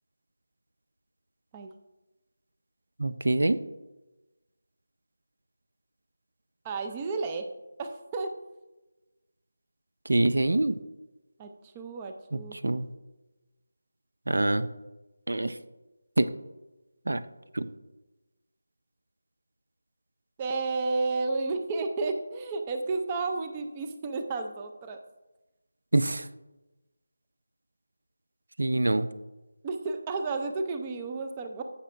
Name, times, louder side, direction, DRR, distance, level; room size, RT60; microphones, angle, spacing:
voice 1, 3.0-3.6 10.1-10.8 12.3-12.9 14.3-14.7 15.3-15.6 16.2-16.3 17.1-17.2 17.5-17.7 25.9-26.3 28.6-29.1, right 2 dB, 80° right, 13 dB, 0.5 m, -25 dB
voice 2, 6.6-7.4 7.8-8.3 11.4-12.6 20.4-25.0 29.6-31.6, right 3 dB, 15° right, 6 dB, 0.4 m, -32 dB
15.0 x 5.7 x 2.5 m, 1.1 s
figure-of-eight pair, 175°, 0 cm